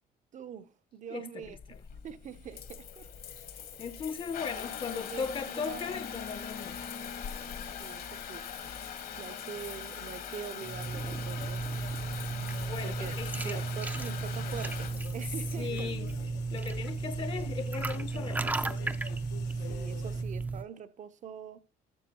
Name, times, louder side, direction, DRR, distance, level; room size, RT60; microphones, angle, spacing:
voice 1, 0.3-1.6 2.0-3.1 4.5-4.6 4.9-6.0 7.8-8.5 9.2-11.6 12.8-15.9 19.6-21.6, right 8 dB, 45° right, 0.7 m, -44 dB
voice 2, 1.1-1.8 3.8-6.8 12.6-13.7 15.6-16.1 16.5-18.8, left 6 dB, 30° left, 0.7 m, -38 dB
Water tap faucet / Bathtub (filling or washing) / Trickle dribble, 1.4-20.3, left 7 dB, 60° left, 1.3 m, -42 dB
sound 1, 10.6-20.6, right 4 dB, 10° right, 0.5 m, -34 dB
sound 2, 10.7-20.2, left 10 dB, 80° left, 0.9 m, -48 dB
12.5 x 7.1 x 2.9 m
cardioid pair, 110°, 17 cm